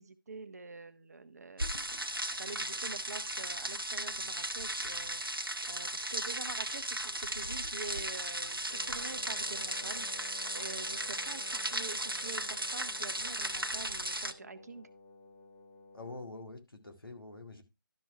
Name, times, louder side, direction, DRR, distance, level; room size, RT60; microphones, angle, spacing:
voice 1, 0.0-2.0 2.4-14.9, right 4 dB, 45° right, 0.9 m, -47 dB
sound 1, 1.6-14.3, right 1 dB, 90° right, 0.8 m, -36 dB
Wind instrument woodwind instrument, 8.7-16.3, left 2 dB, 25° left, 1.6 m, -53 dB
voice 2, 15.9-17.6, left 2 dB, 85° left, 2.0 m, -46 dB
12.0 x 6.1 x 3.2 m
figure-of-eight pair, 150°, 12 cm